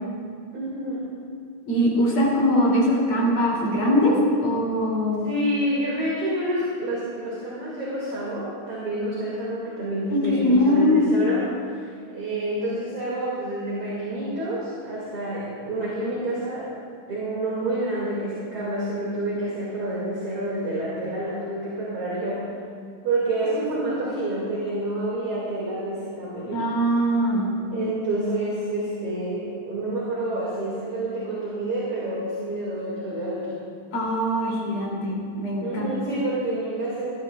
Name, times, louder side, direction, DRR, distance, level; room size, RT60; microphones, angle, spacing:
voice 1, 0.5-1.0 5.2-16.7 17.1-22.4 23.0-26.6 27.7-33.5 35.6-37.1, right 1 dB, 45° right, -8 dB, 3.0 m, -28 dB
voice 2, 1.7-5.3 10.3-11.1 26.5-27.5 33.9-35.9, equal, 45° left, -5 dB, 3.7 m, -21 dB
20.0 x 13.0 x 2.4 m, 2.2 s
omnidirectional pair, 3.6 m